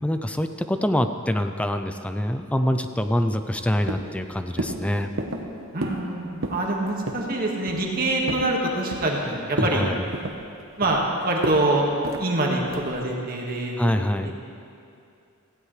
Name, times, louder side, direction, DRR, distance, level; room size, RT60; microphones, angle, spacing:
voice 1, 0.0-5.1 9.7-10.0 13.8-14.3, left 1 dB, 5° left, 7 dB, 0.4 m, -25 dB
sound 1, 3.0-3.6 3.9-4.2 4.6-4.8 5.2-5.5 5.8-6.1 6.3-6.7 7.1-7.3 7.7-8.5 8.9-9.2 9.5-9.8 10.1-11.0 11.4-11.6 12.0-12.2 12.7-13.0, right 1 dB, 65° right, 1.1 m, -31 dB
voice 2, 5.7-9.9 10.8-11.9 12.2-13.8 14.2-14.3, right 2 dB, 45° right, -1 dB, 1.8 m, -25 dB
17.5 x 15.5 x 3.3 m, 2.6 s
head